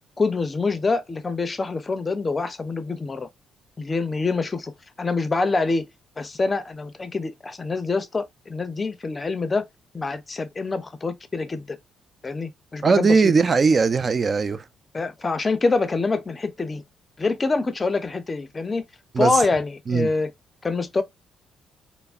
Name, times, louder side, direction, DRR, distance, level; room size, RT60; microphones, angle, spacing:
voice 1, 0.2-3.3 3.8-4.7 5.0-5.8 6.2-9.6 9.9-11.8 12.2-13.3 14.9-16.8 17.2-18.8 19.2-20.3 20.6-21.0, left 3 dB, 25° left, 0.5 m, -25 dB
voice 2, 12.8-14.6 19.1-19.4 19.9-20.1, right 4 dB, 40° right, 0.4 m, -19 dB
3.4 x 2.0 x 2.4 m
cardioid pair, 90°, 0 cm